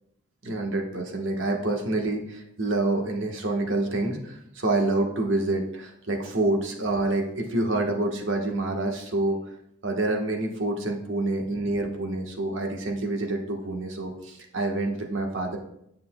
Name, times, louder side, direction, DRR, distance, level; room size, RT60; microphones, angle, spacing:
voice 1, 0.4-9.4 9.8-15.6, right 2 dB, 75° right, 2 dB, 1.2 m, -27 dB
9.8 x 6.5 x 2.2 m, 0.77 s
head